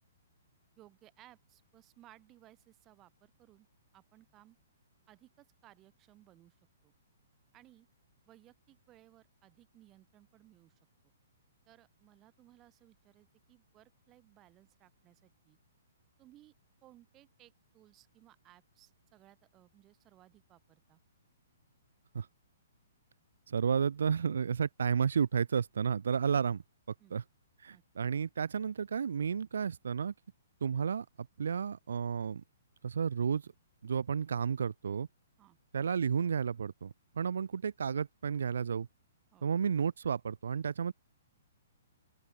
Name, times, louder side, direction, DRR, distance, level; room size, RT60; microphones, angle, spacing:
voice 1, 0.8-3.7 3.9-4.6 5.1-6.5 6.8-6.9 7.5-7.9 8.2-10.7 11.7-15.6 16.2-16.5 16.8-21.0 27.0-27.2 27.7-28.1 35.4-35.6 39.3-39.5, right 15 dB, 15° right, 2.2 m, -61 dB
voice 2, 23.5-26.6 27.1-27.2 27.6-30.1 30.6-31.1 31.4-32.4 32.8-33.4 33.8-35.1 35.7-38.9 39.4-40.9, right 6 dB, 80° right, 0.3 m, -32 dB
open air
hypercardioid pair, 175°, 0 cm